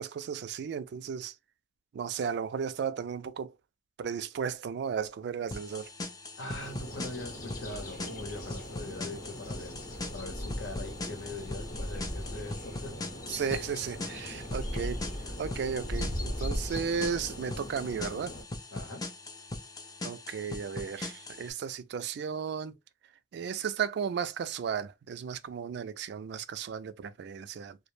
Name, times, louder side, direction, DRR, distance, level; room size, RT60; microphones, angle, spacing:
voice 1, 0.0-1.4 1.9-3.6 4.0-5.9 13.3-18.4 20.0-22.8 23.3-27.8, right 7 dB, 65° right, 0.3 m, -34 dB
sound 1, 5.5-21.5, left 2 dB, 20° left, 0.4 m, -41 dB
voice 2, 6.4-12.9 18.7-19.1, left 2 dB, 85° left, 0.9 m, -42 dB
sound 2, 6.6-18.4, equal, 45° left, 0.8 m, -39 dB
2.2 x 2.1 x 3.1 m
head